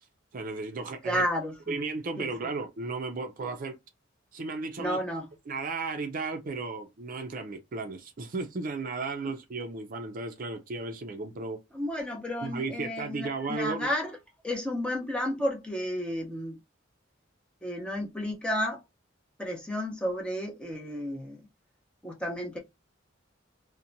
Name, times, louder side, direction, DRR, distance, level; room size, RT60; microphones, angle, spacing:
voice 1, 0.3-1.3 1.7-3.8 4.3-5.0 5.5-11.6 12.4-13.9, right 3 dB, 45° right, 0.4 m, -34 dB
voice 2, 1.0-1.8 2.2-2.3 4.8-5.3 11.7-14.2 14.4-16.6 17.6-18.8 19.4-21.4 22.0-22.6, equal, 5° left, 0.7 m, -32 dB
2.8 x 2.1 x 2.5 m
head